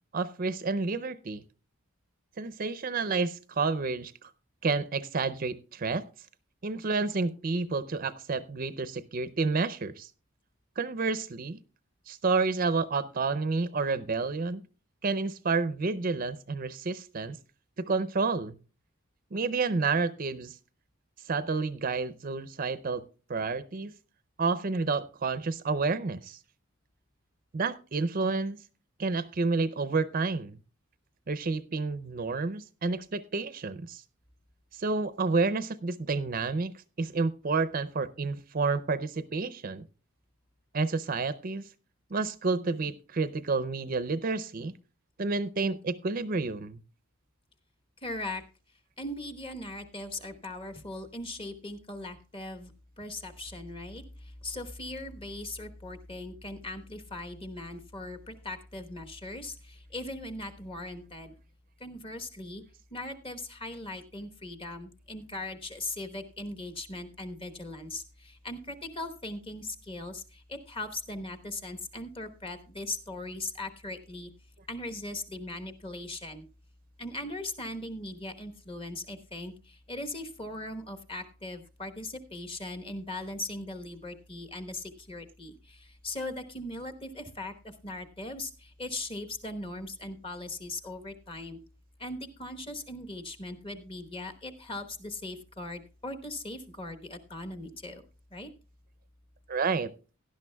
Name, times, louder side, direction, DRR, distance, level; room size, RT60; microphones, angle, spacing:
voice 1, 0.1-1.4 2.4-4.3 4.6-6.0 6.6-10.1 10.8-11.6 12.1-14.6 15.0-17.4 17.8-18.6 19.3-20.6 21.2-23.0 23.3-23.9 24.4-26.4 27.5-28.6 29.0-30.6 31.3-34.0 34.7-36.7 37.0-39.8 40.7-41.7 42.1-44.7 45.2-46.8 99.5-99.9, right 4 dB, 40° right, 0.5 m, -30 dB
voice 2, 48.0-48.4 49.0-52.7 53.0-61.3 61.8-62.6 62.9-74.3 74.7-76.5 77.0-91.6 92.0-98.0 98.3-98.5, left 2 dB, 25° left, 1.1 m, -39 dB
17.0 x 11.5 x 2.2 m
head